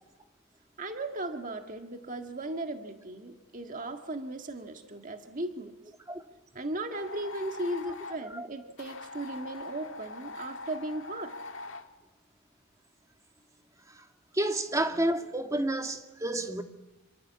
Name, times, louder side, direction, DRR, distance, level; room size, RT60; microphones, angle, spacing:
voice 1, 0.8-5.8 6.6-11.4, right 1 dB, 40° right, 1.8 m, -37 dB
sound 1, 6.9-8.2 8.8-11.9, left 3 dB, 70° left, 1.8 m, -43 dB
voice 2, 14.3-16.6, right 1 dB, 15° right, 2.0 m, -30 dB
27.5 x 25.0 x 8.5 m
head